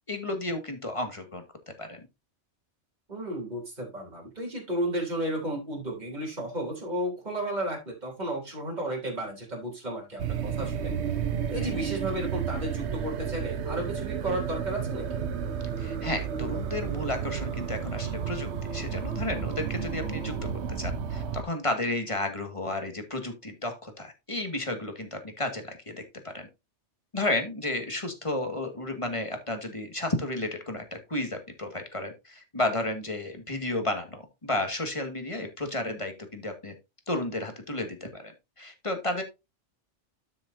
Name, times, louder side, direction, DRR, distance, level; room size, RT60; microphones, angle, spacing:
voice 1, 0.1-1.4 1.8-2.0 11.6-11.9 15.8-20.3 20.7-26.5 27.1-36.7 37.1-38.3 38.6-39.2, left 2 dB, 25° left, 5 dB, 2.0 m, -32 dB
voice 2, 3.1-11.2 11.5-15.3, right 1 dB, 35° right, -1 dB, 3.6 m, -33 dB
sound 1, 10.2-21.4, right 7 dB, 70° right, 1.1 m, -32 dB
12.0 x 6.7 x 2.7 m, 0.24 s
omnidirectional pair, 1.2 m